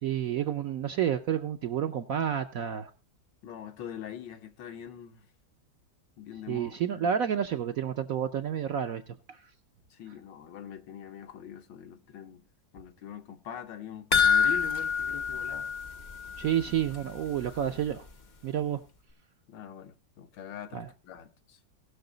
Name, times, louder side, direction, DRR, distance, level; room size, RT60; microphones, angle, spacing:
voice 1, 0.0-2.9 6.5-9.0 9.3-9.4 16.4-18.1 18.4-18.8 20.7-20.9, right 9 dB, 65° right, 0.9 m, -30 dB
voice 2, 3.4-5.3 6.2-7.1 9.9-12.4 12.7-15.7 19.5-21.6, left 9 dB, 75° left, 1.6 m, -43 dB
sound 1, 14.1-16.7 16.9-17.0 17.5-17.6, left 6 dB, 50° left, 0.5 m, -26 dB
18.5 x 6.3 x 3.9 m
omnidirectional pair, 2.0 m